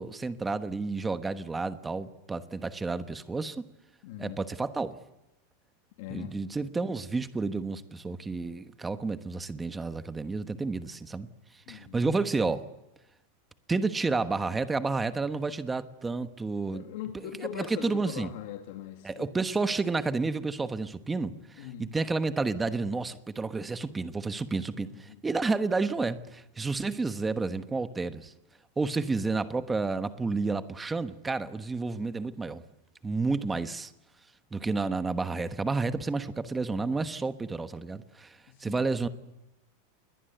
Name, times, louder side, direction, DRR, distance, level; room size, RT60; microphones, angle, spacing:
voice 1, 0.0-3.6 4.2-5.0 6.1-11.3 11.7-12.6 13.7-16.8 17.1-18.3 19.0-28.3 28.8-32.6 33.0-33.9 34.5-39.1, right 3 dB, 10° right, 1.2 m, -31 dB
voice 2, 4.0-4.4 6.0-6.4 11.7-12.1 16.7-19.3 21.6-21.9 24.9-25.2 33.4-33.5 38.5-38.9, left 11 dB, 55° left, 2.6 m, -41 dB
28.5 x 22.0 x 7.9 m
supercardioid pair, 170°, 0 cm